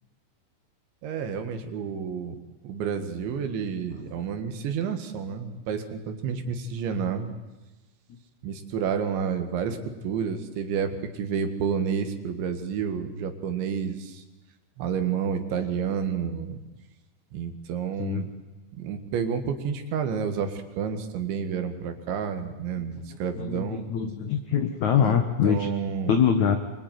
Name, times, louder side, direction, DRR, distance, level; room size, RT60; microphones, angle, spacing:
voice 1, 1.0-2.4 2.6-7.3 8.4-9.8 10.0-14.2 14.8-16.6 17.3-18.3 18.8-23.8 25.0-25.2 25.5-26.1, right 7 dB, 75° right, 7 dB, 4.1 m, -30 dB
voice 2, 22.8-25.7 26.1-26.6, left 8 dB, 65° left, 6 dB, 1.8 m, -24 dB
25.0 x 24.5 x 9.4 m, 1.1 s
omnidirectional pair, 5.4 m